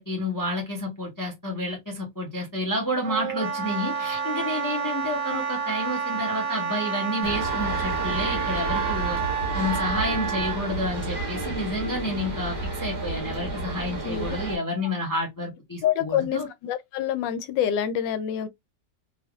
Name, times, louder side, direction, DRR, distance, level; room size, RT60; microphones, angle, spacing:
voice 1, 0.0-9.2 9.5-16.5, left 1 dB, 20° left, 0.6 m, -30 dB
Wind instrument woodwind instrument, 3.0-10.6, right 6 dB, 60° right, 0.7 m, -29 dB
sound 1, 7.2-14.6, right 3 dB, 25° right, 1.3 m, -31 dB
voice 2, 15.8-18.5, left 9 dB, 80° left, 1.2 m, -26 dB
3.5 x 2.8 x 2.3 m
omnidirectional pair, 1.9 m